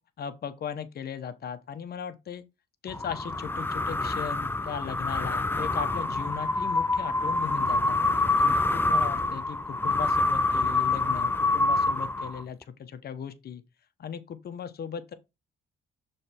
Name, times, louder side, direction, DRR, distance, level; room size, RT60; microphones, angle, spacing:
voice 1, 0.2-2.4 2.8-8.0 8.4-13.6 14.0-15.1, left 7 dB, 55° left, 1.0 m, -37 dB
sound 1, 2.9-12.6, left 2 dB, 10° left, 0.5 m, -26 dB
6.4 x 3.3 x 4.4 m
cardioid pair, 90°, 20 cm